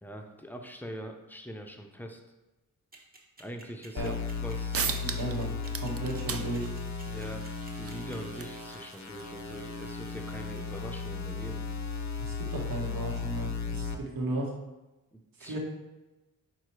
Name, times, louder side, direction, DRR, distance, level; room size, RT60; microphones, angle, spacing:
voice 1, 0.0-2.2 3.4-5.2 7.1-11.7 15.1-15.6, equal, 5° left, 3 dB, 0.6 m, -43 dB
sound 1, 2.9-8.1, right 2 dB, 25° right, 1.1 m, -52 dB
sound 2, 4.0-14.0, left 5 dB, 50° left, 0.6 m, -36 dB
sound 3, 4.4-4.5 4.7-5.4 5.6-10.8, right 6 dB, 40° right, 0.5 m, -39 dB
voice 2, 5.0-6.7 12.1-14.5 15.4-15.6, right 2 dB, 70° right, -1 dB, 1.6 m, -35 dB
4.8 x 4.8 x 4.7 m, 1.1 s
wide cardioid pair, 140°, 36 cm